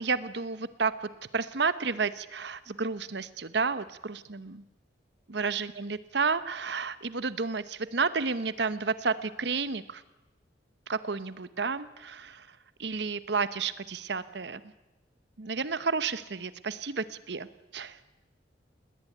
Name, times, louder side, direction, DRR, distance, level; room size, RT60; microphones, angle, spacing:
voice 1, 0.0-4.6 5.3-10.0 10.9-12.5 12.8-14.6 15.4-17.5 17.7-18.0, right 4 dB, 65° right, 14 dB, 0.9 m, -31 dB
19.5 x 19.0 x 9.2 m, 1.0 s
head